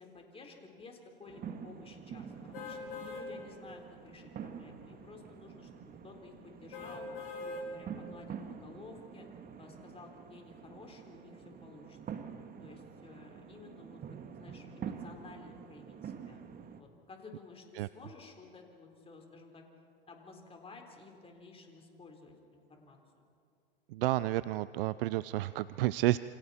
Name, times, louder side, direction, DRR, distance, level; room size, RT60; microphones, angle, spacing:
voice 1, 0.0-7.1 7.4-9.3 9.6-12.0 12.6-14.0 14.3-16.4 16.8-19.6 20.1-23.3, left 3 dB, 20° left, 2 dB, 4.1 m, -53 dB
sound 1, 1.3-16.8, right 7 dB, 30° right, 1.7 m, -47 dB
sound 2, 2.5-3.3 3.8-3.9 6.7-7.7 8.2-8.3, left 4 dB, 70° left, 5.7 m, -42 dB
voice 2, 23.9-26.2, right 16 dB, 70° right, 16 dB, 0.5 m, -30 dB
28.0 x 25.5 x 4.4 m, 2.5 s
hypercardioid pair, 100°, 29 cm